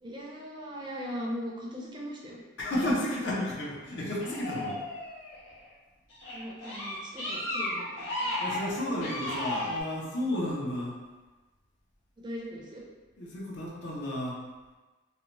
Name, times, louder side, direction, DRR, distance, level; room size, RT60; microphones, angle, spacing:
voice 1, 0.0-2.4 6.3-8.4 12.2-12.8, equal, 25° right, -3 dB, 0.4 m, -39 dB
voice 2, 2.6-4.8 8.4-11.0 13.2-14.4, left 1 dB, 60° left, -4 dB, 0.6 m, -32 dB
sound 1, 4.2-5.6 6.1-9.8, left 1 dB, 90° left, 1.0 m, -34 dB
2.7 x 2.1 x 2.9 m, 1.2 s
head